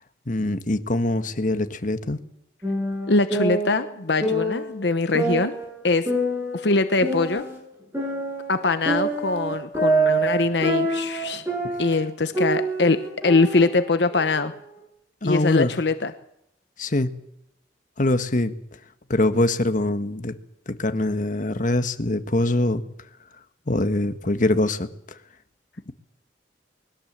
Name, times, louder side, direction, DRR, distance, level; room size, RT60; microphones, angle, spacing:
voice 1, 0.3-2.2 15.2-15.7 16.8-17.1 18.0-18.6 19.1-20.3 20.7-22.8 23.7-24.9 25.9-26.0, left 1 dB, 45° left, 9 dB, 1.4 m, -23 dB
sound 1, 2.6-4.7 5.1-7.6 7.9-12.1 12.3-14.4, right 2 dB, 15° right, 7.9 m, -26 dB
voice 2, 3.1-5.5 5.8-6.1 6.5-7.5 8.5-11.4 11.8-13.0 13.2-14.5 15.2-16.1, left 3 dB, 70° left, 10 dB, 0.9 m, -22 dB
21.0 x 17.5 x 7.5 m, 0.78 s
head